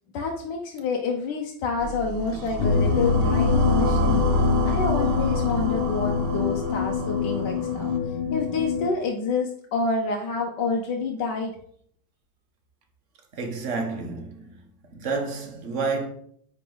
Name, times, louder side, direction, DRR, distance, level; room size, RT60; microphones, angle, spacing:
voice 1, 0.1-4.2 4.6-7.9 8.3-11.5, left 4 dB, 65° left, 1.3 m, -28 dB
sound 1, 1.8-8.0, right 1 dB, 65° right, 1.4 m, -28 dB
sound 2, 2.6-8.9, left 6 dB, 90° left, 1.5 m, -25 dB
voice 2, 13.3-14.5 14.9-16.1, right 4 dB, 45° right, 1.2 m, -29 dB
9.5 x 4.0 x 3.9 m
omnidirectional pair, 2.2 m